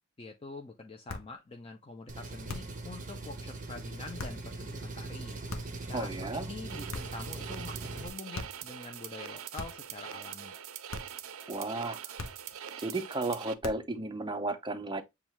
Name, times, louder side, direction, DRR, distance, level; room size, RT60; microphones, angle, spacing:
voice 1, 0.2-5.4 5.9-10.5, left 3 dB, 25° left, 0.5 m, -46 dB
sound 1, 1.1-1.4 2.5-2.8 4.2-4.5 5.5-5.9 6.9-7.3 8.3-8.7 9.5-10.0 10.9-11.2 12.2-12.6 13.6-14.0, left 3 dB, 75° left, 0.9 m, -42 dB
Engine, 2.1-8.1, right 2 dB, 40° right, 0.9 m, -41 dB
voice 2, 5.9-6.5 11.5-12.3 12.8-15.0, right 2 dB, 20° right, 0.5 m, -34 dB
sound 2, 6.7-13.5, right 9 dB, 80° right, 0.4 m, -43 dB
7.1 x 2.4 x 3.0 m
head